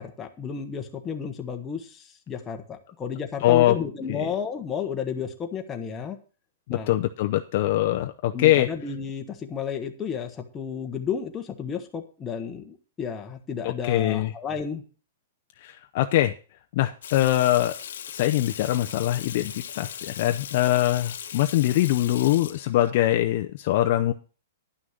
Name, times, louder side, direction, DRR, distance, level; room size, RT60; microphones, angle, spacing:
voice 1, 0.0-6.2 6.7-6.9 8.3-14.8, left 7 dB, 10° left, 3 dB, 1.2 m, -32 dB
voice 2, 3.4-3.8 4.1-4.3 6.7-8.7 13.8-14.3 15.6-16.3 16.7-17.7 18.1-24.1, left 14 dB, 40° left, 6 dB, 0.7 m, -23 dB
Water tap faucet / Sink (filling or washing), 17.0-22.9, left 9 dB, 70° left, 1.1 m, -38 dB
11.0 x 6.2 x 6.6 m, 0.36 s
hypercardioid pair, 170°, 0 cm